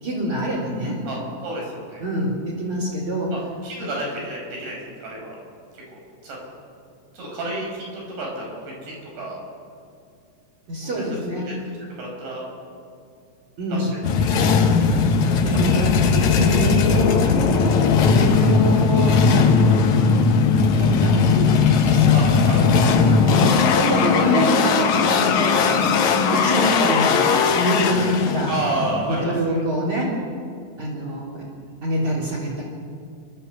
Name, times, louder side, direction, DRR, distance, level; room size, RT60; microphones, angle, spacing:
voice 1, 0.0-1.0 2.0-3.3 10.7-11.5 13.6-13.9 15.4-17.7 18.1-20.0 20.7-22.1 22.6-25.9 26.3-27.3 27.5-28.5 29.1-30.1 30.8-31.5 31.8-32.6, equal, 45° right, -4 dB, 4.3 m, -25 dB
voice 2, 1.1-2.0 3.6-5.4 5.7-6.4 7.1-9.4 10.8-12.4 13.7-13.9 14.2-14.5 15.7-15.8 22.1-22.9 28.5-29.6, right 2 dB, 70° right, -2 dB, 8.0 m, -31 dB
sound 1, 14.0-29.3, left 5 dB, 75° left, 1.7 m, -18 dB
28.0 x 12.5 x 8.1 m, 2.3 s
omnidirectional pair, 5.2 m